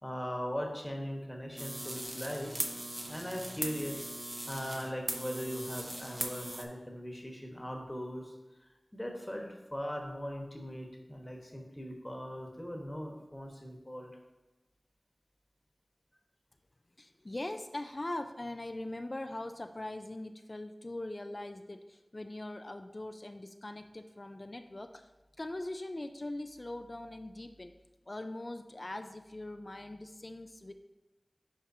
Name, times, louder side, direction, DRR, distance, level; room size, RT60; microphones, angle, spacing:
voice 1, 0.0-2.5 3.1-4.1 4.5-14.2, equal, 15° left, 1 dB, 1.2 m, -40 dB
sound 1, 1.6-6.7, right 1 dB, 25° right, 0.7 m, -39 dB
voice 2, 17.0-25.1 25.4-27.7 28.1-30.7, left 1 dB, 45° left, 7 dB, 0.4 m, -41 dB
10.0 x 3.7 x 2.8 m, 1.0 s
wide cardioid pair, 45°, 0 cm